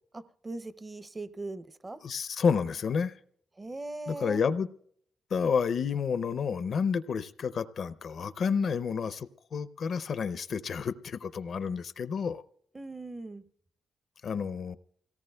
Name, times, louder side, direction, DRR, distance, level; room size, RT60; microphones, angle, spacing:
voice 1, 0.1-2.0 3.6-4.4 12.7-13.4, right 2 dB, 25° right, 0.5 m, -40 dB
voice 2, 2.0-3.1 4.1-4.7 5.3-12.4 14.2-14.8, left 6 dB, 60° left, 0.5 m, -30 dB
28.5 x 18.0 x 2.2 m
cardioid pair, 100°, 0 cm